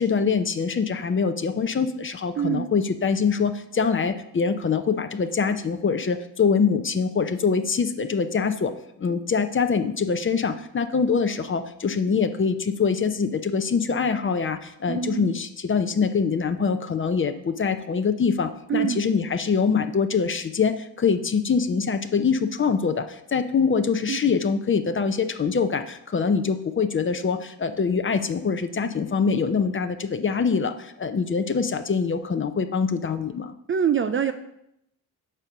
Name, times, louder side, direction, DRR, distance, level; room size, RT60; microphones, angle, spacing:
voice 1, 0.0-8.7 9.0-33.5, left 5 dB, 30° left, 8 dB, 0.6 m, -24 dB
voice 2, 2.4-2.7 14.9-15.3 18.7-19.0 24.1-24.2 33.7-34.3, right 8 dB, 30° right, 9 dB, 0.4 m, -24 dB
5.2 x 4.3 x 6.1 m, 0.79 s
supercardioid pair, 60°, 44 cm